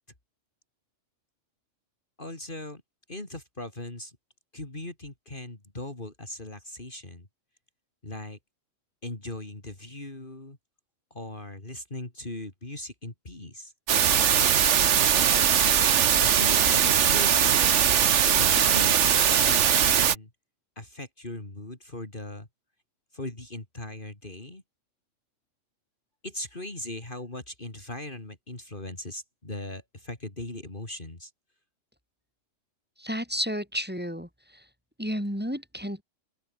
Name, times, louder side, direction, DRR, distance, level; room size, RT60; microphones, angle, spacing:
voice 1, 2.2-2.8 3.1-4.2 4.5-7.3 8.0-8.4 9.0-10.6 11.1-13.7 16.2-17.7 18.2-20.3 20.8-22.5 23.1-24.6 26.2-31.3, left 1 dB, 40° left, 4.0 m, -39 dB
sound 1, 13.9-20.1, right 8 dB, 65° right, 1.3 m, -21 dB
voice 2, 33.0-34.6 35.0-36.0, equal, 5° right, 6.9 m, -32 dB
open air
omnidirectional pair, 1.3 m